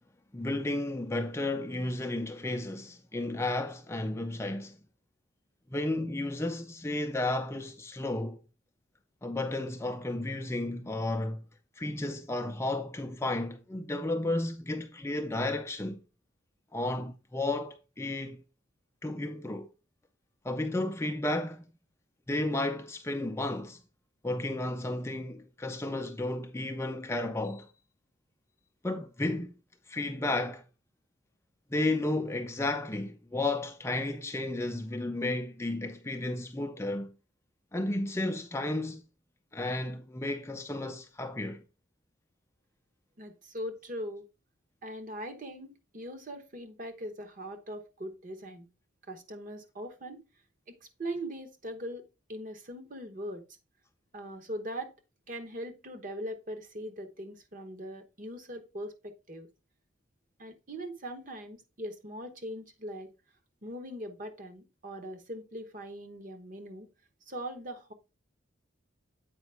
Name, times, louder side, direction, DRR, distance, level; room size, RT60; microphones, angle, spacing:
voice 1, 0.3-4.8 5.7-8.4 9.2-11.5 11.8-16.0 16.7-18.4 19.0-19.7 20.4-21.7 22.3-23.8 24.2-27.7 28.8-29.5 29.9-30.6 31.7-37.1 37.7-39.0 39.5-41.6, left 2 dB, 15° left, 0.4 m, -33 dB
voice 2, 43.2-44.2 44.8-48.7 49.1-50.2 50.7-52.0 52.3-53.4 54.1-54.9 55.3-59.5 60.4-63.1 63.6-66.9 67.3-67.9, equal, 40° right, 1.0 m, -41 dB
8.0 x 5.1 x 3.3 m
head